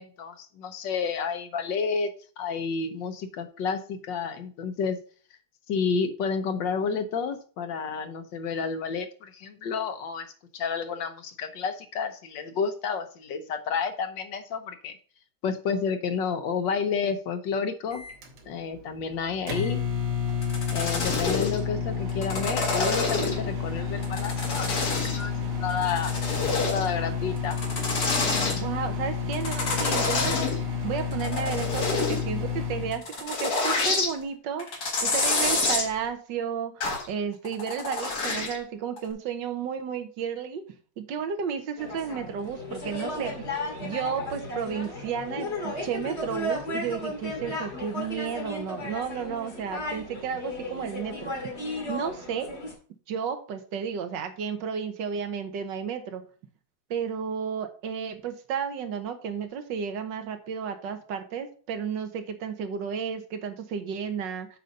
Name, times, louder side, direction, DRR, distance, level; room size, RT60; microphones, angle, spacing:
voice 1, 0.0-2.1 2.4-5.0 5.7-10.3 10.5-15.0 15.4-18.0 18.5-19.8 20.7-26.1 26.4-27.6, left 5 dB, 65° left, 8 dB, 1.5 m, -30 dB
Microwave oven, 17.9-33.0, left 6 dB, 90° right, 2.4 m, -30 dB
sound 1, 20.4-21.6 22.1-23.5 24.0-25.3 25.7-26.9 27.4-28.6 29.3-30.6 31.0-32.2 32.9-34.1 34.6-35.9 36.8-37.1 37.5-38.6 39.0-39.1, left 3 dB, 50° left, 2.2 m, -27 dB
voice 2, 28.6-30.6 30.8-34.7 35.0-40.6 41.0-43.5 43.8-51.3 51.9-52.5 53.1-56.2 56.9-64.5, right 7 dB, 65° right, 8 dB, 1.5 m, -32 dB
sound 2, 41.8-52.7, left 1 dB, 30° left, 2.4 m, -35 dB
7.8 x 4.0 x 5.2 m, 0.41 s
omnidirectional pair, 2.3 m